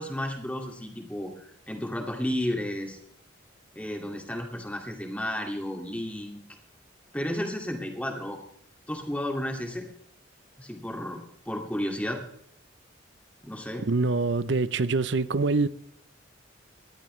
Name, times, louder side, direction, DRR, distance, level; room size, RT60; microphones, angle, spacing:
voice 1, 0.0-3.0 3.7-6.4 7.1-8.4 8.9-9.9 10.6-12.2 13.4-13.8, left 1 dB, 5° left, 2.2 m, -32 dB
voice 2, 13.8-15.7, right 3 dB, 65° right, 0.6 m, -25 dB
19.5 x 13.5 x 3.2 m
head